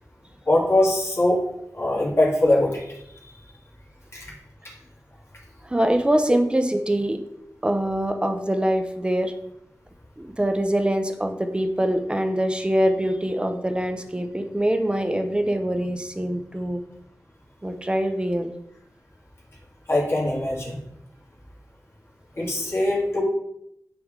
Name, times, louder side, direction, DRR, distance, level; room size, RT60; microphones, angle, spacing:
voice 1, 0.5-1.4 1.7-2.8 4.1-4.3 19.9-20.8 22.4-23.2, left 1 dB, 45° left, -6 dB, 2.2 m, -21 dB
voice 2, 5.6-7.2 7.6-9.3 10.2-16.8 17.6-18.5 22.4-22.7, right 1 dB, 15° right, 6 dB, 0.7 m, -24 dB
9.4 x 3.4 x 3.7 m, 0.79 s
wide cardioid pair, 90°, 6 cm